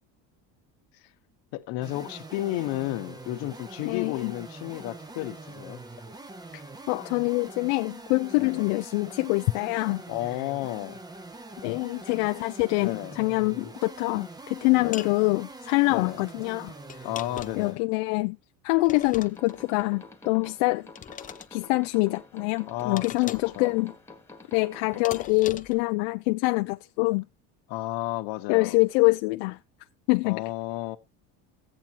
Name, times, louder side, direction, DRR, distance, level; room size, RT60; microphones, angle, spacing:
voice 1, 1.5-5.8 8.4-8.7 10.1-11.0 12.8-13.1 14.8-15.1 15.9-16.2 17.0-17.8 22.7-23.7 27.7-28.8 30.2-31.0, left 16 dB, 70° left, 1.3 m, -32 dB
sound 1, 1.8-17.8, right 2 dB, 10° right, 0.8 m, -44 dB
voice 2, 3.8-4.4 6.5-6.6 6.9-10.0 10.3-10.4 11.6-17.1 17.6-18.4 18.6-20.9 21.5-23.9 24.5-27.3 28.5-29.6 30.1-30.4, left 25 dB, 90° left, 0.6 m, -25 dB
sound 2, 14.9-15.2 16.9-17.7 18.8-19.6 20.9-21.5 23.0-23.6 25.0-25.8, left 9 dB, 25° left, 0.5 m, -39 dB
sound 3, 18.7-25.3, left 3 dB, 5° left, 1.4 m, -48 dB
14.5 x 8.9 x 2.9 m
cardioid pair, 140°, 36 cm